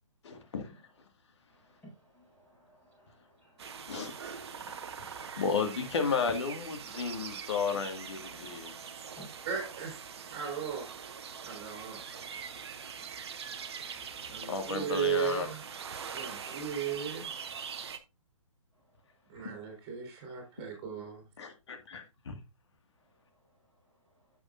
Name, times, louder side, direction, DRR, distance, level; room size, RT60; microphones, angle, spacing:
voice 1, 0.2-0.7 3.9-4.4 5.3-8.7 14.5-15.5 21.4-22.4, left 5 dB, 55° left, 1.9 m, -33 dB
voice 2, 1.6-4.1 9.2-9.3, right 1 dB, 10° left, 5.7 m, -56 dB
sound 1, 3.6-18.0, right 7 dB, 50° right, 0.9 m, -43 dB
voice 3, 9.5-10.9 11.4-12.0 14.3-15.6 16.0-17.3 19.3-21.2, right 9 dB, 25° right, 3.9 m, -36 dB
sound 2, 11.8-16.8, right 2 dB, 10° right, 5.2 m, -53 dB
10.0 x 7.0 x 2.5 m
figure-of-eight pair, 130°, 17 cm